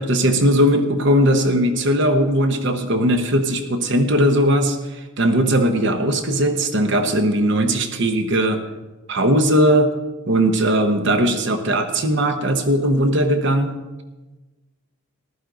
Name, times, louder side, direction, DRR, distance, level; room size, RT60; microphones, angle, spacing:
voice 1, 0.0-8.6 9.1-9.9 10.3-13.8, right 1 dB, 55° right, 7 dB, 0.9 m, -18 dB
14.5 x 12.0 x 3.9 m, 1.2 s
head